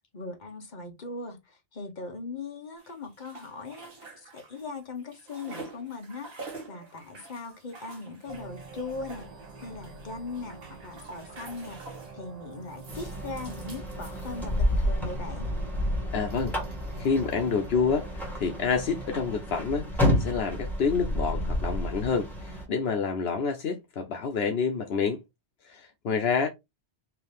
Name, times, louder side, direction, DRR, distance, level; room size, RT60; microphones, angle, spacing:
voice 1, 0.1-6.3 6.7-9.3 9.6-11.8 12.1-15.5, left 3 dB, 45° left, 1.2 m, -39 dB
sound 1, 2.8-4.7 5.0-12.2 12.7-14.7, right 3 dB, 65° right, 1.6 m, -47 dB
sound 2, 8.3-19.4, right 3 dB, 40° right, 0.8 m, -46 dB
sound 3, 12.9-22.7, left 1 dB, ahead, 1.6 m, -30 dB
voice 2, 16.1-16.6 17.0-25.2 25.6-26.5, left 5 dB, 75° left, 0.9 m, -28 dB
4.5 x 2.7 x 3.3 m
omnidirectional pair, 1.1 m